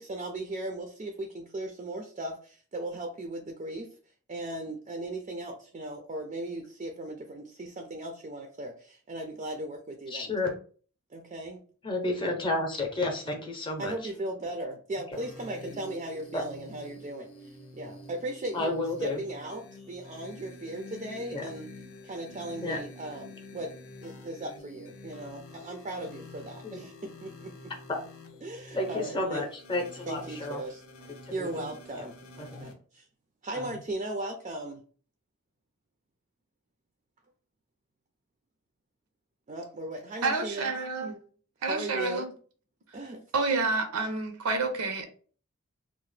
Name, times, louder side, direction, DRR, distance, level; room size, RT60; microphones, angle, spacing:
voice 1, 0.0-3.9 4.3-10.5 11.1-11.6 13.8-21.7 22.0-23.7 24.0-27.7 28.4-29.4 30.1-30.8 31.3-33.1 33.4-34.8 39.5-40.7 41.6-42.2 42.9-43.2, right 1 dB, 30° right, 0.3 m, -37 dB
voice 2, 10.1-10.5 11.8-13.9 16.3-16.4 18.5-19.2 21.3-21.5 22.6-22.8 26.6-26.8 27.9-28.0 28.7-30.6 31.4-31.7 32.4-32.6 33.5-33.7, left 2 dB, 20° left, 0.6 m, -31 dB
sound 1, 15.1-32.7, left 2 dB, 70° left, 0.5 m, -48 dB
voice 3, 40.2-41.2 41.6-42.3 43.3-45.1, right 3 dB, 85° right, 0.5 m, -29 dB
2.8 x 2.0 x 3.2 m
head